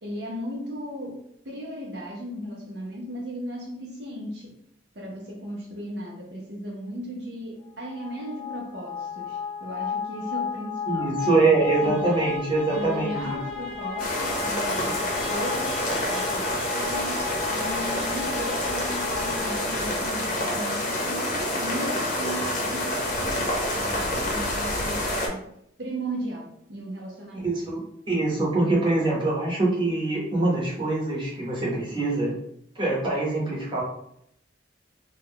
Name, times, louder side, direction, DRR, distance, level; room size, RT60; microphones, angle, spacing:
voice 1, 0.0-4.6 4.9-11.2 11.6-12.2 12.7-25.5 25.8-27.6, equal, 60° right, -2 dB, 0.6 m, -36 dB
sound 1, 7.8-20.6, left 6 dB, ahead, 0.5 m, -34 dB
voice 2, 10.9-13.4 27.4-32.3 32.7-33.8, right 2 dB, 25° right, -4 dB, 0.8 m, -24 dB
sound 2, 14.0-25.3, left 1 dB, 45° left, 0.7 m, -28 dB
2.3 x 2.1 x 3.4 m, 0.73 s
head